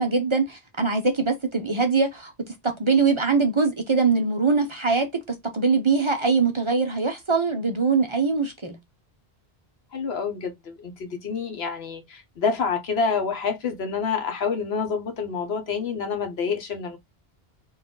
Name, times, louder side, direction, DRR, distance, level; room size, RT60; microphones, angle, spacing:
voice 1, 0.0-2.3 2.6-5.1 5.5-8.8, right 4 dB, 35° right, 0.6 m, -22 dB
voice 2, 9.9-17.0, left 5 dB, 85° left, 1.2 m, -28 dB
4.0 x 2.6 x 3.7 m
omnidirectional pair, 1.0 m